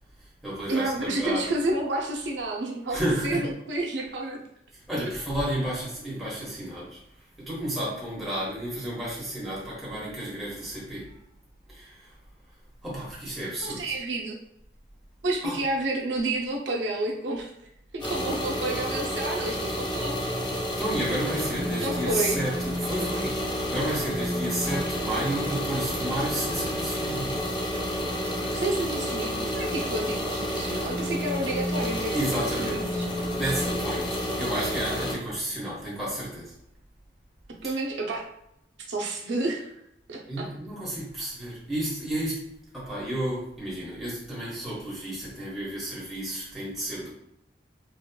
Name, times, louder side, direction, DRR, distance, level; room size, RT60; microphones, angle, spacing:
voice 1, 0.2-1.5 2.9-3.4 4.7-11.2 11.7-12.1 12.8-13.9 15.4-15.6 20.8-27.4 32.1-32.8 33.3-36.5 37.6-37.8 40.3-42.5 42.7-47.1, right 1 dB, ahead, -8 dB, 1.1 m, -32 dB
voice 2, 0.7-4.4 13.6-14.4 15.2-20.2 21.8-22.4 28.5-33.1 37.6-38.2 38.9-39.7 40.1-40.5, right 2 dB, 80° right, 0 dB, 0.5 m, -30 dB
sound 1, 18.0-35.1, equal, 25° left, 0.5 m, -30 dB
4.1 x 2.2 x 2.2 m, 0.77 s
head